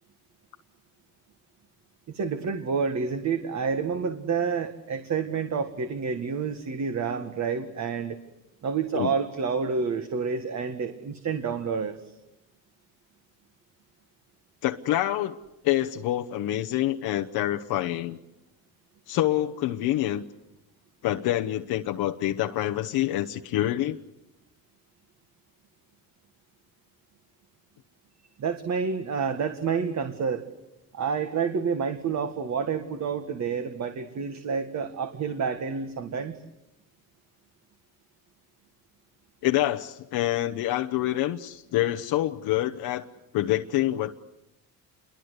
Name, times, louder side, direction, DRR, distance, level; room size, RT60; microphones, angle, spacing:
voice 1, 2.1-8.2 8.6-12.0 28.4-30.4 30.9-36.4, right 5 dB, 50° right, 7 dB, 1.8 m, -29 dB
voice 2, 14.6-15.4 15.6-18.2 19.1-20.2 21.0-24.0 39.4-43.0 43.3-44.1, left 14 dB, 85° left, 5 dB, 1.1 m, -26 dB
28.5 x 23.0 x 8.1 m, 0.90 s
cardioid pair, 125°, 36 cm